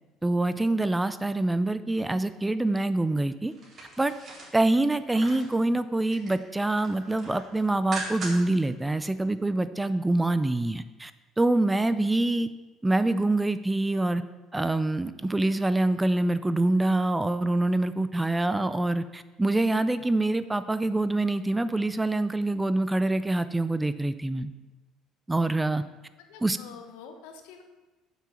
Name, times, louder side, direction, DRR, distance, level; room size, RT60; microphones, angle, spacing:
voice 1, 0.2-3.5 4.0-4.1 4.5-11.1 11.4-12.5 12.8-14.2 14.5-24.5 25.3-25.8 26.4-26.6, right 2 dB, 10° right, 13 dB, 0.5 m, -25 dB
sound 1, 3.5-5.5 5.9-6.4 6.7-8.6 9.0-9.1, right 3 dB, 45° right, 3.7 m, -40 dB
voice 2, 26.2-27.6, left 6 dB, 85° left, 5 dB, 1.2 m, -46 dB
7.3 x 6.0 x 7.1 m, 1.2 s
supercardioid pair, 85°, 0 cm